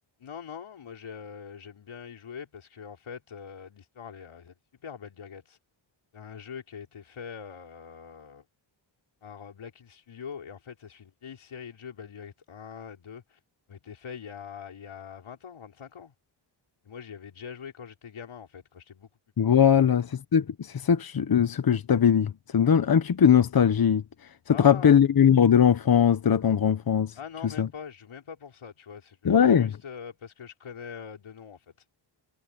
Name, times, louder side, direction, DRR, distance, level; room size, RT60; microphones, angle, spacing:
voice 1, 0.2-5.6 6.1-8.5 9.2-13.4 13.7-16.1 16.8-19.1 19.7-19.9 24.5-25.0 27.2-31.6, left 7 dB, 90° left, 5.2 m, -43 dB
voice 2, 19.4-20.1 20.3-24.0 24.5-27.1 27.4-27.7 29.2-29.7, left 8 dB, 50° left, 1.0 m, -20 dB
wide cardioid pair, 120°, 47 cm